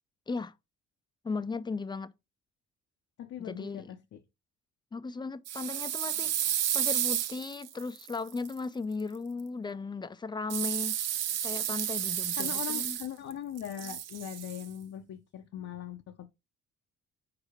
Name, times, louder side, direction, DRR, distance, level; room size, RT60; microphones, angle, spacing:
voice 1, 1.2-2.1 3.4-3.9 4.9-11.0 11.4-13.0, left 4 dB, 15° left, 0.4 m, -36 dB
voice 2, 3.2-4.2 12.4-16.3, left 10 dB, 55° left, 0.7 m, -40 dB
sound 1, 5.5-8.5 10.5-13.3 13.6-14.6, right 10 dB, 60° right, 0.6 m, -32 dB
4.8 x 4.3 x 4.9 m
cardioid pair, 90°, 30 cm